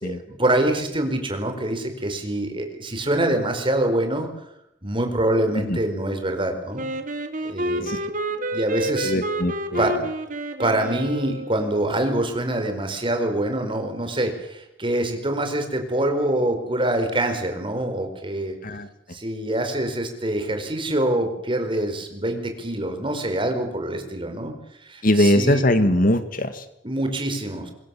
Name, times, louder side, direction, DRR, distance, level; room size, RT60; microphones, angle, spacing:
voice 1, 0.0-4.3 4.8-6.9 7.4-7.9 8.3-9.1 9.8-9.9 10.6-18.6 19.1-24.5 24.8-25.6 26.8-27.7, right 1 dB, 30° right, 6 dB, 4.7 m, -25 dB
Wind instrument woodwind instrument, 6.8-11.8, right 1 dB, 45° right, 2.3 m, -29 dB
voice 2, 7.8-8.1 9.0-9.9 18.6-18.9 25.0-26.7, left 1 dB, 50° left, 10 dB, 1.9 m, -21 dB
25.0 x 22.0 x 7.3 m, 0.81 s
head